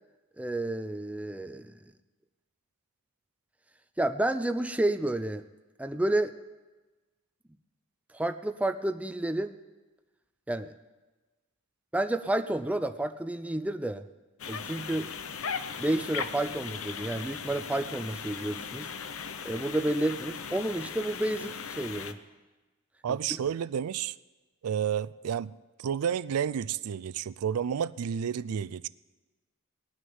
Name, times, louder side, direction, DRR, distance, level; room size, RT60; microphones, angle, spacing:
voice 1, 0.4-1.7 4.0-5.4 5.8-6.3 8.1-9.5 10.5-10.7 11.9-14.0 14.5-15.1 15.8-18.9 19.4-22.2, right 1 dB, 5° right, 9 dB, 0.4 m, -30 dB
sound 1, 14.4-22.1, left 6 dB, 65° left, 0.7 m, -38 dB
voice 2, 23.0-24.2 24.6-25.5 25.8-28.9, right 8 dB, 90° right, 17 dB, 0.4 m, -30 dB
18.5 x 6.2 x 9.5 m, 1.2 s
head